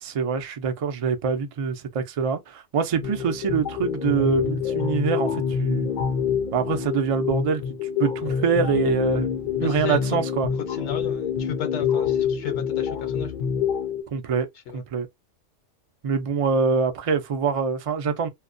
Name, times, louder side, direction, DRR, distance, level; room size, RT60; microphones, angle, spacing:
voice 1, 0.0-5.9 6.5-9.3 9.6-10.5 14.1-14.5 14.7-15.1 16.0-18.3, right 5 dB, 60° right, 0.3 m, -25 dB
sound 1, 3.0-14.0, left 7 dB, 55° left, 0.5 m, -26 dB
voice 2, 9.6-10.2 10.7-13.5 14.7-14.8, left 8 dB, 70° left, 0.9 m, -34 dB
2.3 x 2.1 x 2.5 m
omnidirectional pair, 1.2 m